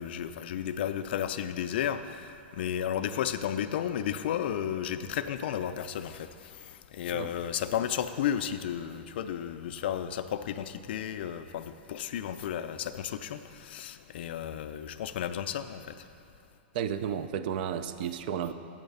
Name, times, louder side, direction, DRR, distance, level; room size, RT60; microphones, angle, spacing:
voice 1, 0.0-15.9, left 9 dB, 65° left, 9 dB, 0.3 m, -33 dB
voice 2, 16.7-18.5, right 8 dB, 55° right, 11 dB, 0.4 m, -32 dB
7.2 x 5.6 x 5.3 m, 2.6 s
hypercardioid pair, 145°, 6 cm